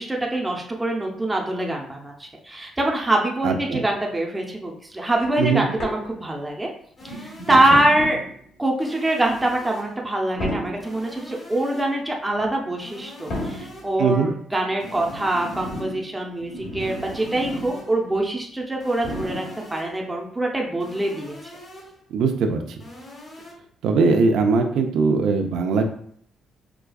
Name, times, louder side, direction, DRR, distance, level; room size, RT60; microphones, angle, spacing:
voice 1, 0.0-6.7 7.0-8.2 8.6-19.5 19.7-21.4, right 1 dB, 10° right, 0 dB, 0.6 m, -24 dB
voice 2, 3.4-3.8 5.4-5.7 7.5-7.6 14.0-14.3 22.1-22.8 23.8-25.8, right 4 dB, 80° right, 5 dB, 0.5 m, -20 dB
sound 1, 5.1-6.5 7.0-8.5 9.2-9.5 10.3-11.1 12.3-12.5 13.2-13.9 14.7-17.9 18.2-18.3 19.0-19.8 20.6-20.7, equal, 65° left, 1.3 m, -34 dB
sound 2, 7.0-8.1 8.8-10.1 10.8-12.1 12.8-14.1 14.8-16.1 16.8-18.1 18.8-20.1 20.8-22.1 22.8-23.5, left 1 dB, 40° left, 1.1 m, -43 dB
4.8 x 2.3 x 2.3 m, 0.62 s
cardioid pair, 90°, 0 cm